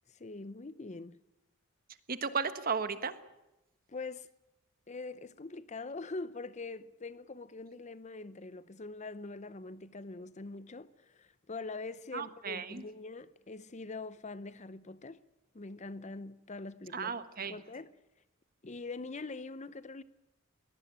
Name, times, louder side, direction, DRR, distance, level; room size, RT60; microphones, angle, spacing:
voice 1, 0.1-1.2 3.9-4.3 4.9-15.2 15.5-17.9 18.6-20.0, left 3 dB, 35° left, 0.7 m, -43 dB
voice 2, 2.1-3.2 12.1-12.8 16.9-17.6, right 5 dB, 45° right, 1.4 m, -35 dB
22.5 x 18.0 x 8.8 m
head